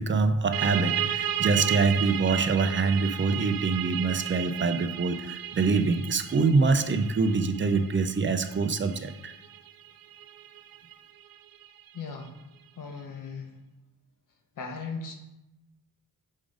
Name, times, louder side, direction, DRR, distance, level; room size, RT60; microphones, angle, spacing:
voice 1, 0.0-9.3, right 4 dB, 35° right, 8 dB, 0.6 m, -25 dB
sound 1, 0.5-11.9, right 11 dB, 85° right, 0.5 m, -34 dB
voice 2, 11.9-12.3 12.7-13.5 14.6-15.1, left 4 dB, 70° left, 3 dB, 1.1 m, -37 dB
6.2 x 3.9 x 4.9 m, 0.94 s
cardioid pair, 100°, 34 cm